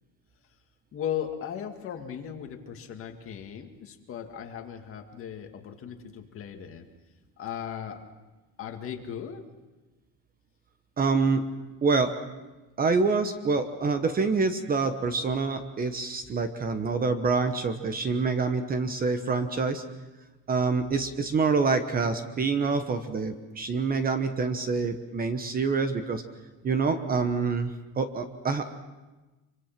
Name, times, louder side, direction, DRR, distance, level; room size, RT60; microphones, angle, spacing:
voice 1, 0.9-6.9 7.4-8.0 8.6-9.4, left 9 dB, 35° left, 4 dB, 2.1 m, -37 dB
voice 2, 11.0-11.4 11.8-12.1 12.8-19.8 20.5-26.2 26.6-28.6, right 4 dB, 25° right, 9 dB, 1.1 m, -26 dB
25.5 x 24.5 x 6.0 m, 1.1 s
cardioid pair, 170°, 36 cm